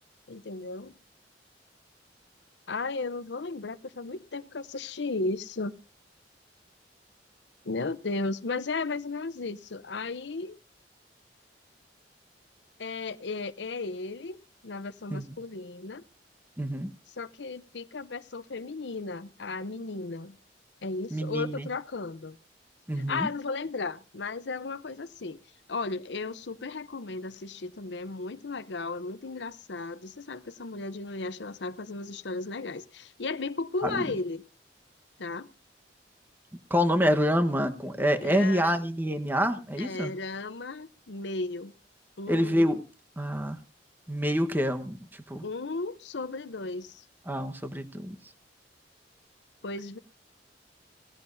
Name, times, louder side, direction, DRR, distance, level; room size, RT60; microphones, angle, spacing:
voice 1, 0.3-0.9 2.7-5.7 7.6-10.6 12.8-14.4 14.6-16.0 17.2-20.4 20.8-22.4 22.9-25.4 25.7-34.5 35.2-35.5 38.2-38.8 39.8-41.7 42.2-42.6 45.4-47.0 49.6-50.0, left 3 dB, 75° left, 0.8 m, -35 dB
voice 2, 16.6-16.9 21.1-21.7 22.9-23.3 33.8-34.1 36.7-40.1 42.3-42.8 43.2-43.6 44.1-45.4 47.3-48.2, equal, 10° right, 1.2 m, -27 dB
19.5 x 16.0 x 2.7 m
head